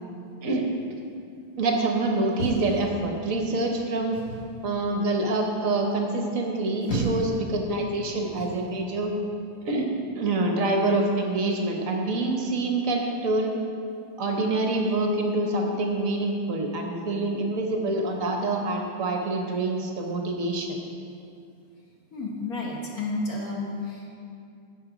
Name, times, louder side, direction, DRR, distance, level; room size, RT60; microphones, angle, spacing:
voice 1, 1.6-4.2 4.6-9.1 9.6-9.9 10.2-13.5 14.2-20.8, right 2 dB, 55° right, 2 dB, 0.9 m, -26 dB
sound 1, 2.4-3.4 4.1-4.5 6.5-7.4 8.4-8.6, right 1 dB, 90° left, 2.7 m, -32 dB
voice 2, 22.1-24.1, left 2 dB, 50° left, -2 dB, 1.3 m, -31 dB
9.4 x 7.3 x 5.0 m, 2.4 s
omnidirectional pair, 2.4 m